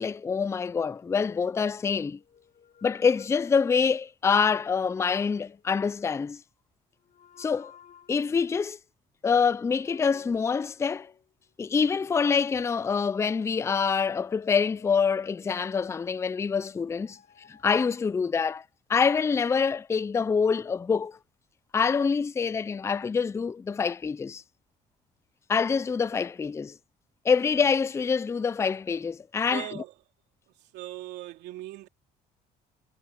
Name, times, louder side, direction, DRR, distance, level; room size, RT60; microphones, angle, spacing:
voice 1, 0.0-2.2 2.8-6.4 7.4-7.7 8.1-8.8 9.2-11.1 11.6-17.2 17.5-18.6 18.9-21.2 21.7-24.4 25.5-26.8 27.2-29.6, left 5 dB, 15° left, 0.4 m, -26 dB
sound 1, 0.7-1.6 2.1-4.2 4.8-5.7 7.0-8.4 9.6-11.3 11.8-13.5 14.1-15.7 16.6-18.5 19.0-19.5, left 8 dB, 50° left, 4.3 m, -56 dB
voice 2, 29.5-29.9 30.6-31.9, right 15 dB, 85° right, 2.8 m, -39 dB
cardioid pair, 110°, 17 cm